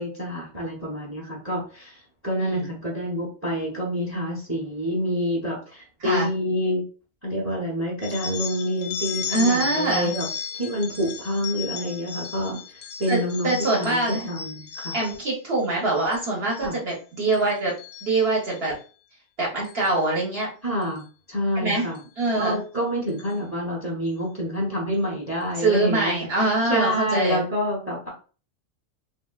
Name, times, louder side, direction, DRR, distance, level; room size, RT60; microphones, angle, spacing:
voice 1, 0.0-6.8 7.2-10.3 10.5-15.0 16.6-16.8 20.6-22.0 22.4-28.1, equal, 15° right, -2 dB, 0.7 m, -27 dB
voice 2, 2.4-2.7 6.0-6.3 9.3-10.1 13.1-14.3 14.9-17.7 18.0-18.7 19.4-20.5 21.6-21.9 22.2-22.6 25.6-27.5, right 2 dB, 55° right, -3 dB, 1.0 m, -24 dB
sound 1, 8.0-15.3 15.8-16.2 16.5-16.9 17.3-18.7 19.6-19.9 20.8-21.0 22.0-22.1 22.4-22.5 23.1-23.3, left 7 dB, 55° left, 0.5 m, -35 dB
3.2 x 2.5 x 2.3 m, 0.37 s
omnidirectional pair, 1.3 m